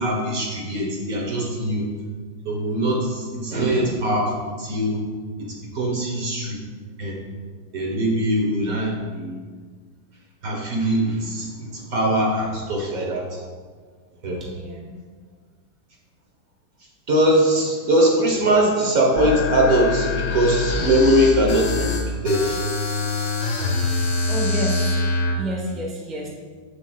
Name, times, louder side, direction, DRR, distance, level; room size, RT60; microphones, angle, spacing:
voice 1, 0.0-1.8 2.4-4.3 4.6-5.0 5.7-6.6 7.0-7.2 7.7-9.4 10.4-13.4 14.2-14.4 17.1-22.6, right 1 dB, 55° right, -1 dB, 1.4 m, -21 dB
voice 2, 14.4-15.0 24.0-25.1 25.3-26.3, equal, ahead, -3 dB, 0.7 m, -30 dB
sound 1, 19.2-25.4, left 3 dB, 55° left, 1.5 m, -24 dB
7.3 x 7.1 x 2.3 m, 1.5 s
omnidirectional pair, 2.0 m